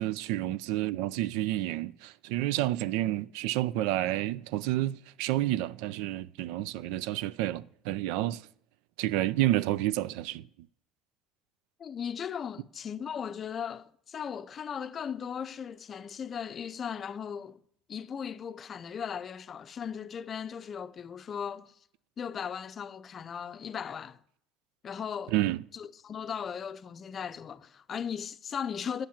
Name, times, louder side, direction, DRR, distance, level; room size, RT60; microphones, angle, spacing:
voice 1, 0.0-8.5 9.0-10.4 25.3-25.6, right 15 dB, 80° right, 0.4 m, -30 dB
voice 2, 11.8-17.6 17.9-21.7 22.2-24.2 24.8-25.3 25.7-29.1, left 7 dB, 35° left, 0.5 m, -37 dB
9.0 x 7.5 x 7.3 m
cardioid pair, 120°, 0 cm